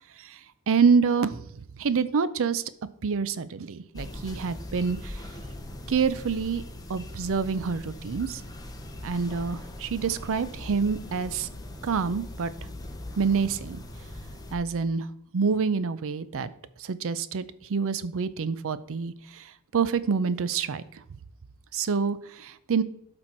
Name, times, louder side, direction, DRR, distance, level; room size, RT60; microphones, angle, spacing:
voice 1, 0.7-1.4 1.8-2.6 3.0-5.1 5.9-6.6 6.9-8.4 9.0-11.5 11.8-12.5 13.2-13.8 14.5-15.0 15.3-16.5 16.9-17.4 17.7-19.1 19.7-20.8 21.7-22.8, right 5 dB, 65° right, 15 dB, 0.5 m, -26 dB
sound 1, 3.9-14.6, left 1 dB, 15° left, 0.9 m, -40 dB
12.0 x 4.3 x 4.4 m, 0.71 s
head